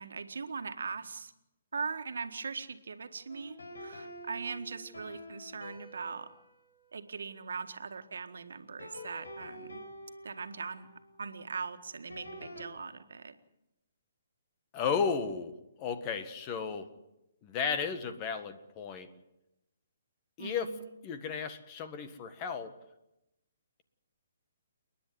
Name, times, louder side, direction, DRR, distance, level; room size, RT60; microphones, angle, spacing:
voice 1, 0.0-1.3 1.7-6.3 6.9-9.8 10.2-10.9 11.2-13.3 20.4-20.9, right 5 dB, 75° right, 8 dB, 1.7 m, -40 dB
sound 1, 3.3-8.1 8.8-12.7, equal, 85° left, 6.1 m, -49 dB
voice 2, 14.7-15.5 15.8-16.9 17.4-19.1 20.4-20.7 21.0-22.7, left 6 dB, 30° left, 9 dB, 1.7 m, -34 dB
30.0 x 10.5 x 9.5 m, 0.91 s
hypercardioid pair, 140°, 0 cm